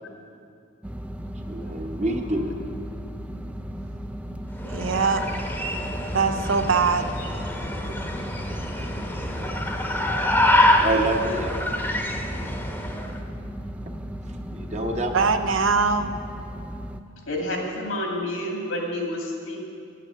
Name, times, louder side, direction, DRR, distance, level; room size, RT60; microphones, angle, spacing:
sound 1, 0.8-17.0, equal, 5° right, 0.3 m, -36 dB
voice 1, 1.5-2.5 9.0-9.1 10.8-11.6 14.5-15.3, right 2 dB, 35° right, 3 dB, 1.0 m, -27 dB
sound 2, 4.5-13.2, left 1 dB, 10° left, 0.9 m, -26 dB
voice 2, 4.6-5.2 6.0-7.1 7.9-8.1 15.1-16.1, right 5 dB, 65° right, 8 dB, 0.7 m, -23 dB
voice 3, 17.3-19.6, left 1 dB, 85° left, 1 dB, 2.3 m, -29 dB
9.9 x 8.9 x 7.6 m, 2.5 s
head